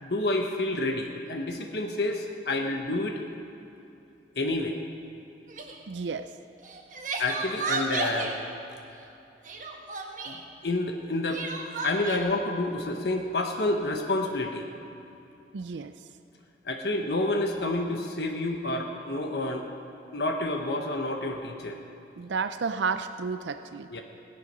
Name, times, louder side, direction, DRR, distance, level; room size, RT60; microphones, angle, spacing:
voice 1, 0.0-3.2 4.3-4.8 7.2-8.4 10.2-11.4 11.8-14.7 16.6-19.7 20.1-21.8 23.9-24.0, left 2 dB, 65° left, 3 dB, 1.1 m, -29 dB
Crying sobbing, 5.5-5.8 6.6-8.4 9.4-10.4 11.3-12.2, right 4 dB, 45° right, 1.3 m, -33 dB
voice 2, 5.9-6.3 15.5-15.9 22.2-24.0, right 5 dB, 90° right, 10 dB, 0.5 m, -31 dB
17.0 x 11.0 x 5.5 m, 2.8 s
head